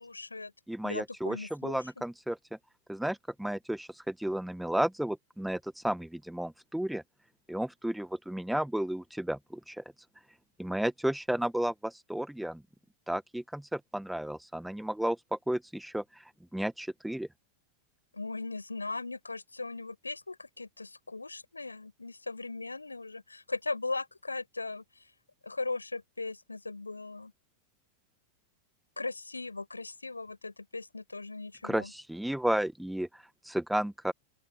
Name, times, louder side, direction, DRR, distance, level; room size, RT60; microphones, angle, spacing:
voice 1, 0.0-0.5 0.8-1.8 18.1-24.8 25.4-27.3 29.0-31.9, left 3 dB, 80° left, 5.6 m, -38 dB
voice 2, 0.7-2.4 2.9-7.0 7.5-9.8 10.6-12.6 13.1-16.2 16.5-17.3 31.6-34.1, right 1 dB, ahead, 1.5 m, -33 dB
open air
figure-of-eight pair, 90°, 0 cm